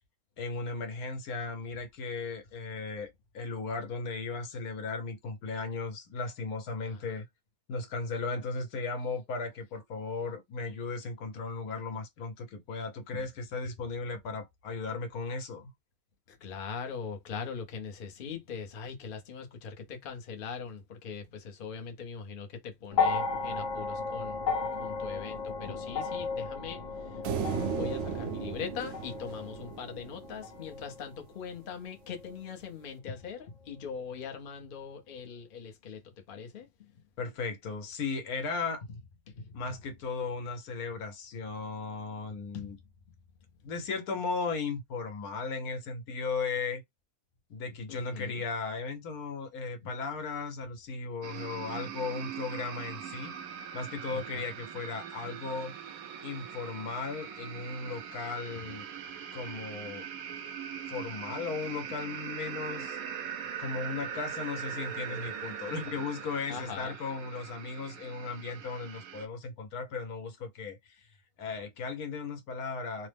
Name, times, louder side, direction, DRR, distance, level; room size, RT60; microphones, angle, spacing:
voice 1, 0.4-7.3 7.7-15.7 37.2-38.8 39.5-42.8 43.6-46.8 47.5-53.4 53.7-55.7 56.2-58.8 59.3-60.1 60.9-71.1 71.4-73.1, left 4 dB, 85° left, 1.3 m, -36 dB
voice 2, 16.3-24.4 24.8-27.2 27.7-36.0 36.3-36.7 39.3-39.8 42.5-42.7 47.9-48.4 49.8-49.9 54.3-54.4 66.5-66.9, left 6 dB, 45° left, 0.8 m, -41 dB
sound 1, 22.9-31.3 32.3-32.4, left 4 dB, 65° left, 1.3 m, -34 dB
sound 2, 27.2-30.6, right 7 dB, 65° right, 0.8 m, -36 dB
sound 3, 51.2-69.3, right 8 dB, 85° right, 1.1 m, -41 dB
3.0 x 2.0 x 3.3 m
omnidirectional pair, 1.5 m